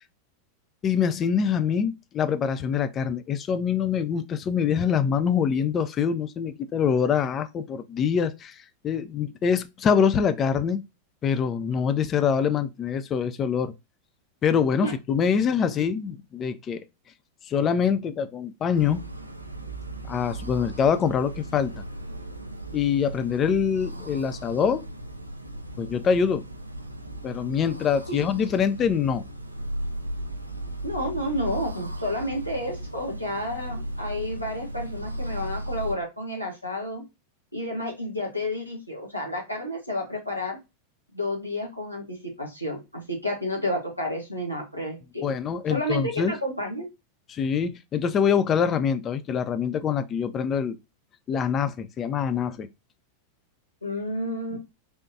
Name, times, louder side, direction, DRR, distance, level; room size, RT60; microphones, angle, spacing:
voice 1, 0.8-8.6 8.8-10.8 11.2-13.7 14.4-16.8 17.5-19.0 20.1-21.7 22.7-24.9 25.8-26.4 27.2-29.2 45.2-46.3 47.3-50.8 51.3-52.7, left 7 dB, 25° left, 0.4 m, -24 dB
sound 1, 18.7-35.9, right 1 dB, 85° right, 0.4 m, -36 dB
voice 2, 30.8-37.0 37.5-40.6 41.1-45.3 45.7-46.9 53.8-54.6, left 1 dB, 90° left, 1.2 m, -31 dB
3.4 x 2.9 x 2.6 m
figure-of-eight pair, 90°, 0 cm